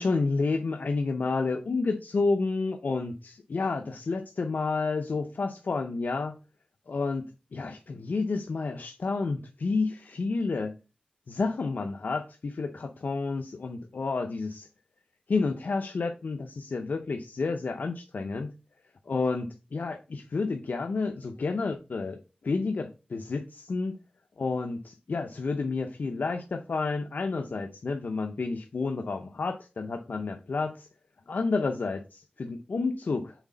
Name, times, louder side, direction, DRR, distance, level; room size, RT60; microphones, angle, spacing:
voice 1, 0.0-6.4 6.9-7.2 7.5-10.8 11.3-14.7 15.3-18.5 19.1-24.0 24.4-30.9 31.3-32.0 32.5-33.3, left 4 dB, 90° left, 5 dB, 0.5 m, -30 dB
6.1 x 4.0 x 3.8 m, 0.30 s
wide cardioid pair, 50°, 3 cm